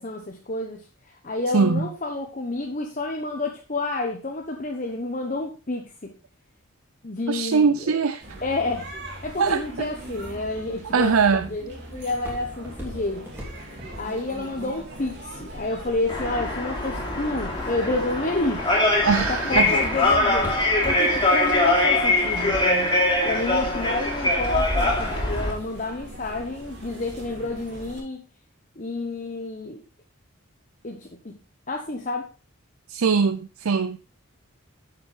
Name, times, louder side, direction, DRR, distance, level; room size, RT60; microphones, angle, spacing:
voice 1, 0.0-6.1 7.0-8.0 8.4-8.9 9.2-13.3 14.0-18.9 19.1-22.9 23.2-28.2 28.8-29.8 30.8-31.4 31.7-32.3, left 2 dB, 35° left, 1.0 m, -30 dB
voice 2, 1.5-1.9 7.3-8.2 9.4-9.9 10.9-11.5 19.0-19.7 32.9-34.0, right 5 dB, 80° right, 0.5 m, -21 dB
sound 1, 8.2-28.0, right 1 dB, 50° right, 3.0 m, -40 dB
Walk footsteps, 11.5-16.1 16.7-17.2 17.7-18.0 18.4-21.2 21.6-21.7, equal, 10° right, 3.3 m, -37 dB
sound 2, 16.1-25.5, left 2 dB, 20° left, 2.9 m, -23 dB
8.9 x 7.5 x 3.3 m
head